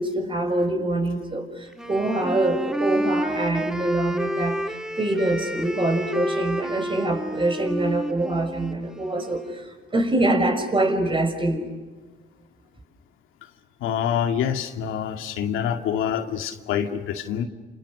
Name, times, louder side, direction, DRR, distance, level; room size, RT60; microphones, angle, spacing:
voice 1, 0.0-9.6 9.9-11.7, right 1 dB, 25° right, 5 dB, 6.2 m, -24 dB
Wind instrument woodwind instrument, 1.7-9.6, right 1 dB, 5° right, 1.9 m, -30 dB
voice 2, 13.8-17.4, left 9 dB, 90° left, 5 dB, 2.3 m, -26 dB
29.5 x 28.5 x 6.6 m, 1.3 s
cardioid pair, 90°, 20 cm